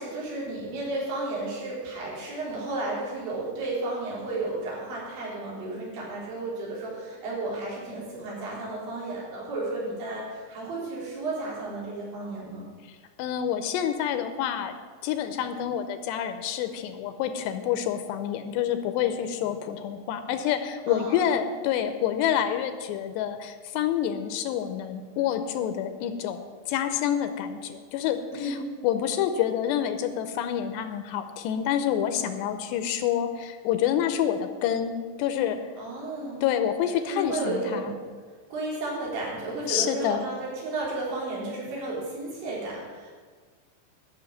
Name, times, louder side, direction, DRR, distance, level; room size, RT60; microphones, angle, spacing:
voice 1, 0.0-12.7 20.9-21.4 28.3-28.5 35.8-36.4 37.1-37.9 38.5-43.1, right 2 dB, 85° right, -5 dB, 6.2 m, -33 dB
voice 2, 12.9-14.7 15.0-35.7 36.4-37.9 39.7-40.3, left 9 dB, 80° left, 9 dB, 2.7 m, -28 dB
13.0 x 6.5 x 9.3 m, 1.5 s
omnidirectional pair, 5.1 m